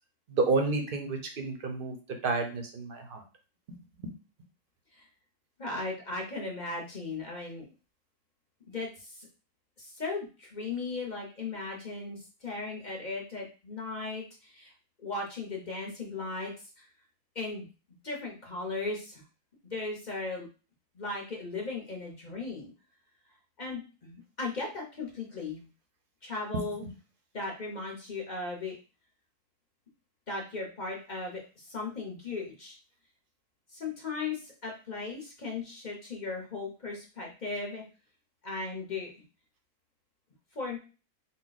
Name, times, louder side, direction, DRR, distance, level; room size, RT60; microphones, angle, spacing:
voice 1, 0.3-2.0 2.2-3.2 26.5-26.6, right 3 dB, 50° right, 4 dB, 0.7 m, -30 dB
voice 2, 5.6-7.7 8.7-9.3 9.8-14.7 15.0-16.9 17.3-17.7 18.0-19.2 19.6-20.5 20.9-22.7 23.6-25.7 26.2-26.8 27.3-28.7 30.3-32.8 33.7-37.8 38.4-39.1 40.5-40.8, left 3 dB, 40° left, -1 dB, 0.7 m, -37 dB
4.0 x 2.2 x 3.9 m, 0.34 s
omnidirectional pair, 1.7 m